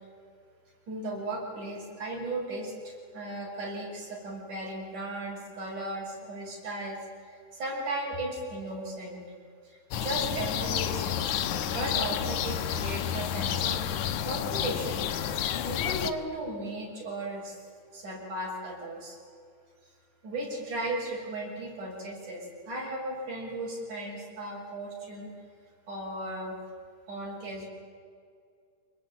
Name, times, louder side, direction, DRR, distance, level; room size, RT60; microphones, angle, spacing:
voice 1, 0.9-9.2 9.6-13.8 14.2-15.0 15.6-17.6 17.9-19.2 20.2-25.3 25.9-26.6 27.1-27.7, right 1 dB, 75° right, -2 dB, 8.0 m, -36 dB
sound 1, 9.9-16.1, left 9 dB, 70° left, 2.5 m, -30 dB
27.0 x 23.0 x 9.0 m, 2.3 s
omnidirectional pair, 3.6 m